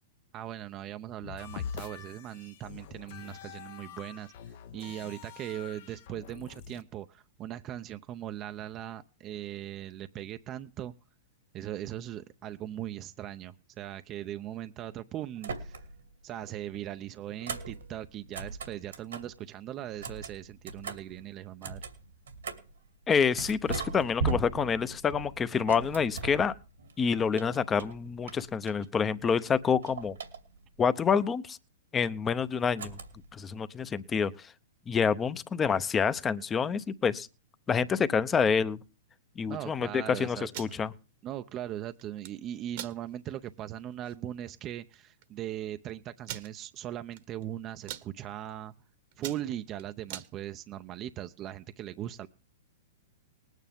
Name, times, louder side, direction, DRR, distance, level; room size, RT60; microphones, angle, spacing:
voice 1, 0.3-4.3 4.7-10.9 11.5-15.8 16.2-21.8 39.5-40.5 41.2-48.7 49.2-52.3, right 12 dB, 30° right, 0.5 m, -39 dB
sound 1, 1.2-6.8, left 8 dB, 55° left, 0.8 m, -44 dB
sound 2, 15.4-16.1 16.4-19.4 19.9-22.8 23.4-26.9 27.3-29.1 29.4-30.8 32.8-33.4, right 4 dB, 90° right, 2.4 m, -39 dB
voice 2, 23.1-26.5 27.0-30.1 30.8-31.6 31.9-33.0 33.3-34.3 34.9-37.3 37.7-38.8 39.4-40.9, left 6 dB, 20° left, 0.7 m, -27 dB
sound 3, 40.4-40.8 42.0-42.3 42.7-43.0 43.5-43.6 43.9-44.1 44.9-45.0 45.2-45.3 46.2-46.5 47.1-47.4 47.7-48.1 48.6-48.8 49.1-50.3, right 12 dB, 55° right, 1.2 m, -41 dB
19.5 x 9.2 x 3.6 m
hypercardioid pair, 125°, 0 cm